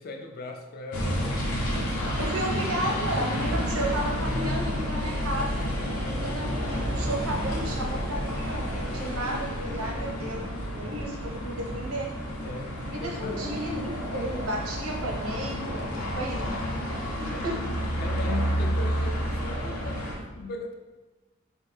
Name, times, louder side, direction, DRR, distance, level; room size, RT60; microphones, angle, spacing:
voice 1, 0.0-1.4 1.7-2.3 3.4-3.7 6.0-6.4 9.6-10.3 12.4-13.6 15.6-16.5 17.3-17.6 18.0-20.8, left 3 dB, 45° left, 4 dB, 0.4 m, -40 dB
sound 1, 0.9-20.2, equal, 80° left, 0.8 m, -30 dB
voice 2, 2.2-5.5 6.1-10.4 10.7-12.1 12.9-15.6 16.2-16.4 17.2-17.6, right 1 dB, 90° right, 0 dB, 0.8 m, -33 dB
sound 2, 3.7-17.5 17.8-18.7, equal, 40° right, 0.4 m, -39 dB
4.4 x 2.7 x 3.2 m, 1.2 s
head